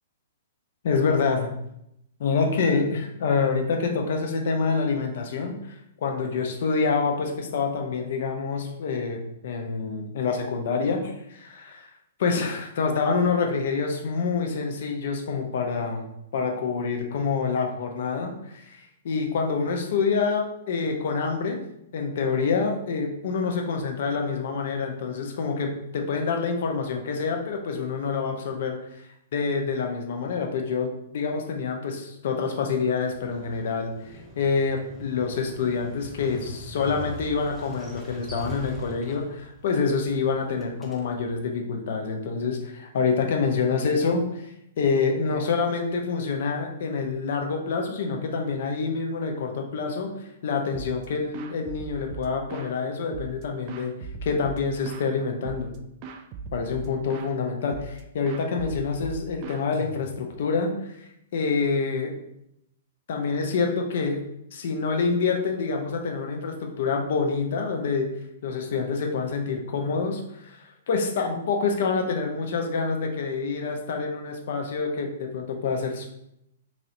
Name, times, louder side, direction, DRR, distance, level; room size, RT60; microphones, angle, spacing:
voice 1, 0.8-1.5 2.2-5.6 6.0-11.9 12.2-18.8 19.0-21.6 21.9-28.8 29.3-33.9 34.4-44.5 44.8-50.1 50.4-53.9 54.2-55.7 56.5-60.8 61.3-62.2 63.1-64.2 64.5-68.1 68.4-76.0, left 5 dB, 60° left, 3 dB, 0.6 m, -27 dB
Motorcycle, 33.1-41.4, right 1 dB, 5° left, 0.7 m, -42 dB
sound 1, 50.7-51.1 51.3-52.8 53.1-55.1 55.4-55.8 56.0-57.3 57.7-58.0 58.3-60.3, right 4 dB, 40° right, 0.3 m, -39 dB
3.0 x 2.8 x 2.6 m, 0.79 s
hypercardioid pair, 115°, 0 cm